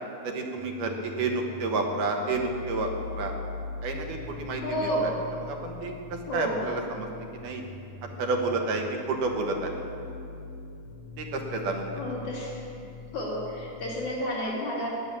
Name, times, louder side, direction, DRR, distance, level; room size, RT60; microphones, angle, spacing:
voice 1, 0.2-3.4 3.8-7.1 7.4-7.6 8.2-9.7 11.2-11.9, right 3 dB, 80° right, 2 dB, 2.8 m, -30 dB
sound 1, 0.5-14.2, left 4 dB, 85° left, 1.3 m, -42 dB
voice 2, 4.6-5.2 6.3-6.7 12.0-12.6 13.1-14.9, equal, 65° left, -5 dB, 4.3 m, -31 dB
18.0 x 6.9 x 7.4 m, 2.5 s
omnidirectional pair, 3.7 m